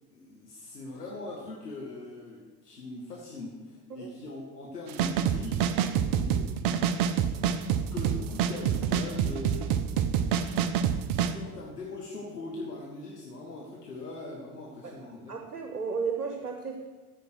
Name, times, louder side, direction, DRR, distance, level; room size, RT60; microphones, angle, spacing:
voice 1, 0.1-6.7 7.9-9.8 11.3-15.3, left 2 dB, 90° left, -3 dB, 1.4 m, -41 dB
sound 1, 4.9-11.3, right 8 dB, 50° right, 0.8 m, -26 dB
voice 2, 15.3-16.8, right 5 dB, 90° right, 3 dB, 1.0 m, -33 dB
14.0 x 5.2 x 6.1 m, 1.3 s
figure-of-eight pair, 70°, 46 cm